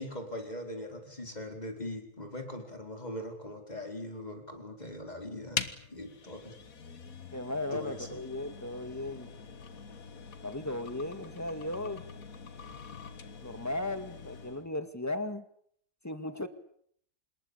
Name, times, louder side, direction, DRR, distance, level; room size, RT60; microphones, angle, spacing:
voice 1, 0.0-6.6 7.7-8.2, left 1 dB, 30° left, 4 dB, 5.2 m, -41 dB
sound 1, 5.5-14.7, left 6 dB, 80° left, 2.0 m, -43 dB
voice 2, 7.3-9.3 10.4-12.0 13.4-15.4 16.0-16.5, left 2 dB, 10° left, 10 dB, 2.0 m, -36 dB
26.5 x 21.5 x 8.5 m, 0.66 s
omnidirectional pair, 1.5 m